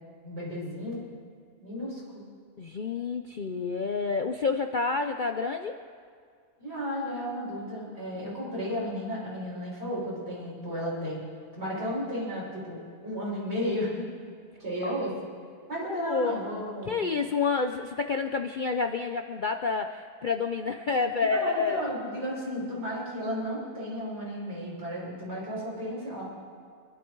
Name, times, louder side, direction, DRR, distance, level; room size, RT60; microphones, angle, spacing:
voice 1, 0.2-0.9 1.6-2.2 6.6-11.2 11.5-14.0 14.6-15.1 15.7-17.0 21.3-26.2, equal, 40° right, -6 dB, 5.7 m, -33 dB
voice 2, 2.6-5.8 14.8-14.9 15.9-16.4 16.9-21.9, left 4 dB, 60° left, 6 dB, 0.5 m, -29 dB
26.5 x 11.5 x 4.7 m, 2.2 s
omnidirectional pair, 1.6 m